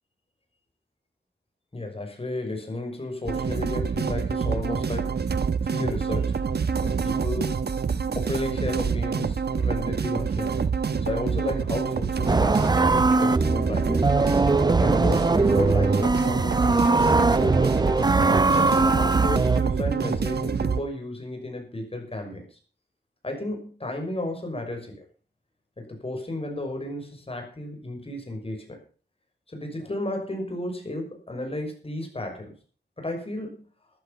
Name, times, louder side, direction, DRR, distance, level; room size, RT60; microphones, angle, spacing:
voice 1, 1.7-5.2 5.6-6.4 6.8-7.6 8.1-10.6 11.0-14.1 14.7-17.7 18.5-22.6 23.2-25.0 25.8-28.8 29.5-32.5 33.0-33.6, left 1 dB, 35° left, 2 dB, 6.2 m, -33 dB
sound 1, 3.3-20.8, right 6 dB, 70° right, 1.1 m, -26 dB
sound 2, 12.3-19.6, right 3 dB, 25° right, 0.6 m, -21 dB
14.5 x 12.0 x 5.7 m, 0.39 s
wide cardioid pair, 110°, 18 cm